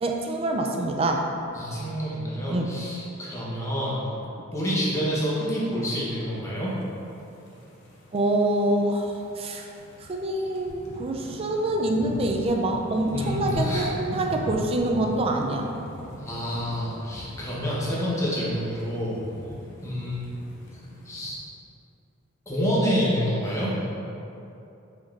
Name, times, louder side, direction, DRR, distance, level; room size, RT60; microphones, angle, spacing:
voice 1, 0.0-1.3 2.5-2.7 8.1-9.7 10.1-15.7, right 1 dB, 25° right, 2 dB, 0.3 m, -26 dB
voice 2, 1.5-4.1 4.5-6.7 13.1-13.8 16.2-19.2 19.8-20.2 21.0-21.4 22.5-23.7, equal, 15° left, -7 dB, 0.9 m, -28 dB
sound 1, 7.0-21.3, left 1 dB, 55° left, 0.7 m, -39 dB
5.1 x 3.6 x 2.5 m, 2.8 s
head